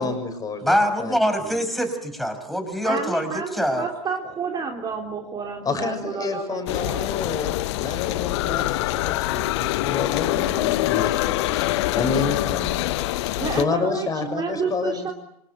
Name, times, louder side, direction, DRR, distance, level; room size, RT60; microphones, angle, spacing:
voice 1, 0.0-1.6 5.6-12.9 13.1-15.1, left 4 dB, 20° left, 7 dB, 6.6 m, -29 dB
voice 2, 0.6-3.9, equal, ahead, 7 dB, 6.1 m, -24 dB
voice 3, 2.8-7.0 13.4-15.1, right 5 dB, 20° right, 3 dB, 3.4 m, -30 dB
sound 1, 6.7-13.6, left 17 dB, 50° left, 1.1 m, -24 dB
29.0 x 26.0 x 8.0 m, 0.75 s
figure-of-eight pair, 95°, 18 cm